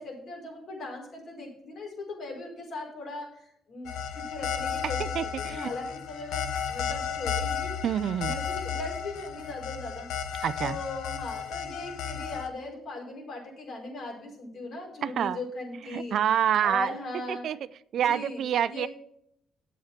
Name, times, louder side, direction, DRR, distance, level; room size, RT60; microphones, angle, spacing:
voice 1, 0.0-7.8 8.2-10.1 10.6-17.5 18.0-18.9, left 2 dB, 65° left, -1 dB, 5.2 m, -39 dB
sound 1, 3.9-12.5, left 7 dB, 90° left, 1.1 m, -33 dB
voice 2, 5.0-5.7 7.8-8.4 10.4-10.8 15.0-15.4 15.9-16.9 17.3-17.6 17.9-18.9, right 9 dB, 65° right, 16 dB, 0.5 m, -27 dB
8.7 x 8.3 x 5.8 m, 0.71 s
cardioid pair, 90°, 0 cm